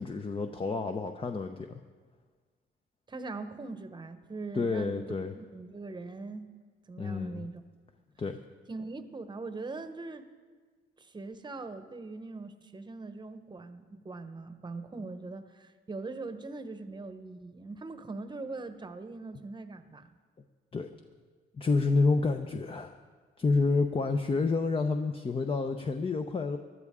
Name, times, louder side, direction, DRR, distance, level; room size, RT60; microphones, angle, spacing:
voice 1, 0.0-1.8 4.6-5.3 7.0-7.5 8.2-8.4 20.7-20.9 21.6-23.0 23.4-26.6, left 3 dB, 25° left, 6 dB, 0.7 m, -29 dB
voice 2, 3.1-5.0 5.5-6.5 6.9-7.6 8.7-10.3 11.0-20.1, right 3 dB, 20° right, 9 dB, 1.0 m, -41 dB
19.0 x 12.0 x 3.7 m, 1.5 s
cardioid pair, 90°, 20 cm